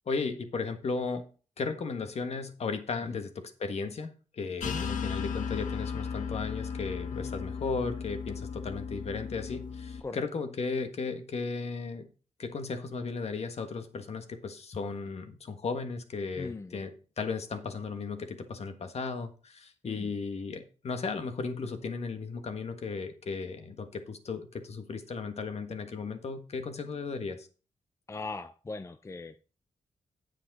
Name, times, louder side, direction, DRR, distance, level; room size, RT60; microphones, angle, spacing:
voice 1, 0.1-1.2 1.6-12.1 12.4-27.5, left 4 dB, 55° left, 1.5 m, -35 dB
sound 1, 4.6-10.0, left 6 dB, 85° left, 1.1 m, -36 dB
voice 2, 16.4-16.8 19.8-20.1 28.1-29.4, left 3 dB, 20° left, 0.4 m, -40 dB
8.6 x 7.9 x 4.1 m
cardioid pair, 100°, 13 cm